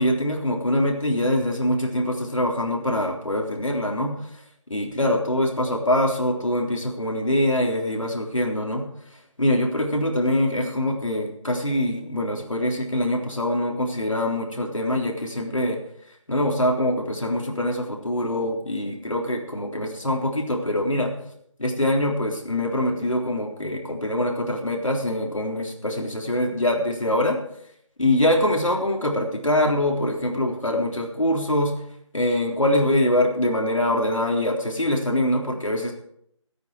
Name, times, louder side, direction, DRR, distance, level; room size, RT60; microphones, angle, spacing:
voice 1, 0.0-4.1 4.7-8.9 9.4-15.8 16.3-21.1 21.6-27.4 28.0-31.7 32.1-35.9, left 1 dB, 75° left, 0 dB, 3.6 m, -24 dB
22.0 x 9.5 x 4.8 m, 0.72 s
figure-of-eight pair, 170°, 17 cm